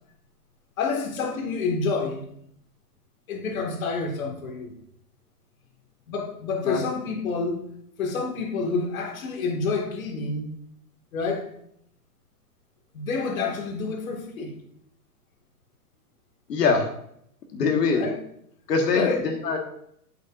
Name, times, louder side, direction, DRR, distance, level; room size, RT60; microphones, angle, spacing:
voice 1, 0.8-2.3 3.3-4.8 6.1-7.7 8.0-10.5 11.1-11.5 12.9-14.5 17.9-18.2 18.9-19.3, left 4 dB, 60° left, 2 dB, 1.9 m, -28 dB
voice 2, 16.5-16.9 17.5-18.1 18.7-19.6, left 5 dB, 90° left, 3 dB, 1.6 m, -23 dB
13.0 x 5.3 x 2.5 m, 0.69 s
hypercardioid pair, 175°, 47 cm